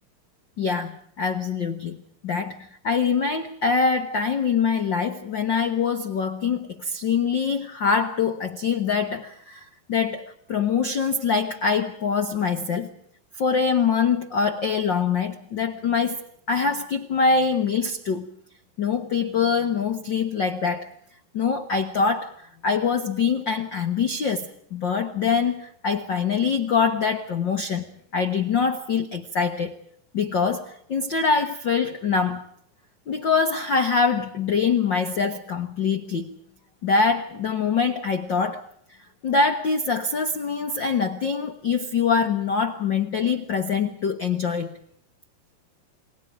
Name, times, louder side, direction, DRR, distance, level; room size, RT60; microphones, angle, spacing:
voice 1, 0.6-12.9 13.3-18.3 18.8-20.9 21.3-27.9 28.1-29.7 30.1-32.4 33.1-36.3 36.8-38.6 39.2-44.7, left 5 dB, 85° left, 7 dB, 1.0 m, -24 dB
29.0 x 21.0 x 5.1 m, 0.67 s
omnidirectional pair, 4.2 m